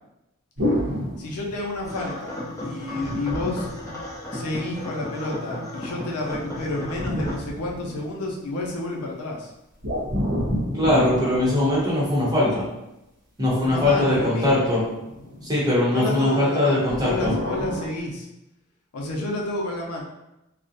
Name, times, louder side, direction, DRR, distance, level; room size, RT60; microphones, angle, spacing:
sound 1, 0.6-2.0 3.0-4.6 6.3-8.3 9.8-12.4 13.5-15.4 16.9-17.9, equal, 55° right, 0.8 m, -30 dB
voice 1, 1.2-2.3 2.6-3.7 4.3-9.5 13.6-14.7 15.0-15.5 15.9-18.3 18.9-20.0, left 2 dB, 90° left, -1 dB, 0.5 m, -30 dB
sound 2, 1.8-7.4, left 1 dB, 15° left, 0.5 m, -34 dB
voice 2, 10.8-12.7 13.4-14.8 15.4-17.3, left 1 dB, 20° right, -7 dB, 0.7 m, -21 dB
2.4 x 2.0 x 2.6 m, 0.91 s
head